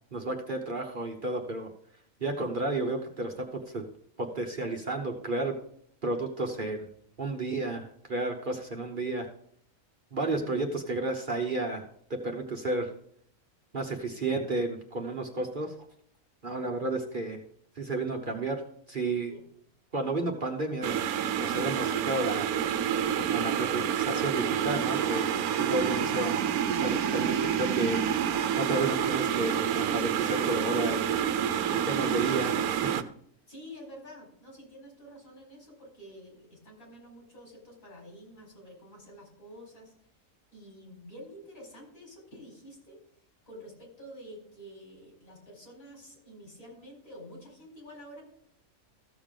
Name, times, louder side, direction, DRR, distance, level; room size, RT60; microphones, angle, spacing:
voice 1, 0.1-1.7 2.2-3.9 4.2-5.6 6.0-6.9 7.2-9.3 10.1-11.8 12.1-12.9 13.7-15.7 16.4-17.4 17.8-18.6 18.9-19.3 19.9-21.0 21.4-22.5 23.3-26.4 26.7-28.0 28.6-31.1 31.7-33.0, right 2 dB, 40° right, 2 dB, 1.1 m, -32 dB
sound 1, 20.8-33.0, right 8 dB, 85° right, 1.1 m, -28 dB
voice 2, 33.5-39.9 40.5-43.0 43.5-48.2, equal, 70° left, -1 dB, 4.8 m, -48 dB
14.5 x 7.0 x 3.7 m, 0.65 s
omnidirectional pair, 1.5 m